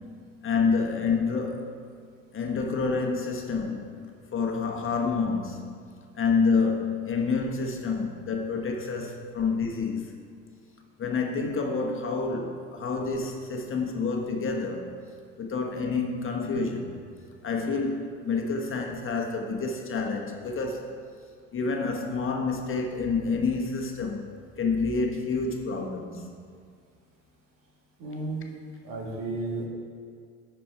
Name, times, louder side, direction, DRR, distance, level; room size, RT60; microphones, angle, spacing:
voice 1, 0.4-1.8 2.3-5.7 6.1-10.1 11.0-14.9 15.4-17.0 17.4-20.9 21.5-24.3 24.6-26.3, left 4 dB, 35° left, 1 dB, 1.3 m, -28 dB
voice 2, 28.0-28.5 28.8-29.7, right 2 dB, 65° right, -2 dB, 2.2 m, -33 dB
11.0 x 4.5 x 4.6 m, 2.1 s
hypercardioid pair, 70°, 36 cm